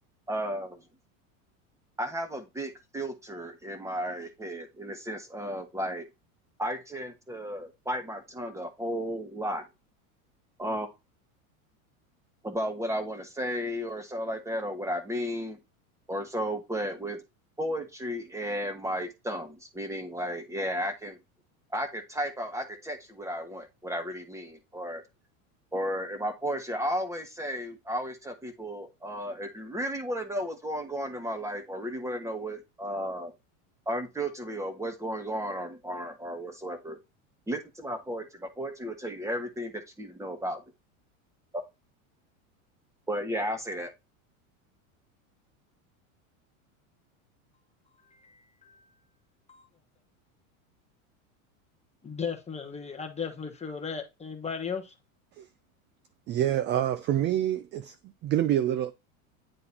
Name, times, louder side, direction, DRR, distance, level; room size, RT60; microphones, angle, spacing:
voice 1, 0.3-0.8 2.0-6.1 6.6-9.7 10.6-10.9 12.4-15.6 16.1-17.2 17.6-21.2 21.7-25.0 25.7-33.3 33.9-37.0 37.5-40.6 41.5-41.6 43.1-43.9, equal, 5° right, 1.5 m, -34 dB
voice 2, 48.1-48.9 49.5-49.6 52.0-54.9, left 6 dB, 15° left, 1.0 m, -36 dB
voice 3, 56.3-58.0 58.2-58.9, right 11 dB, 30° right, 0.4 m, -26 dB
9.8 x 3.8 x 2.9 m
supercardioid pair, 115°, 42 cm